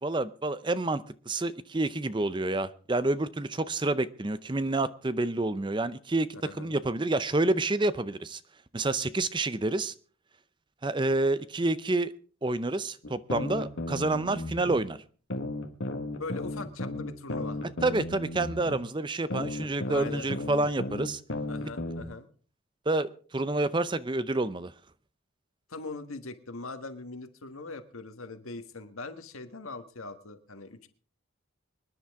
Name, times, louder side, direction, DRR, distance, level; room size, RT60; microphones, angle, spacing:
voice 1, 0.0-8.4 8.7-9.9 10.8-12.1 12.4-15.0 17.8-21.2 22.9-24.7, right 2 dB, 20° right, 0.6 m, -28 dB
voice 2, 6.4-6.8 16.2-17.6 19.9-20.3 21.5-22.3 25.7-30.9, left 3 dB, 85° left, 1.5 m, -41 dB
sound 1, 13.0-14.8 15.3-18.8 19.3-22.0, left 1 dB, 70° left, 1.6 m, -34 dB
25.5 x 10.0 x 3.6 m
head